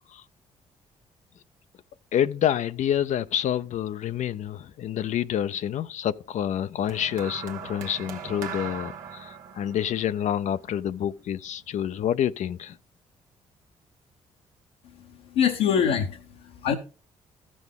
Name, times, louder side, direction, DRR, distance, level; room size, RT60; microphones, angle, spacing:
voice 1, 2.1-12.8, left 10 dB, 60° left, 0.4 m, -28 dB
sound 1, 6.9-11.3 12.2-12.5, right 7 dB, 80° right, 1.1 m, -40 dB
voice 2, 15.3-16.7, left 8 dB, 80° left, 0.9 m, -24 dB
14.0 x 6.1 x 3.5 m
hypercardioid pair, 50°, 14 cm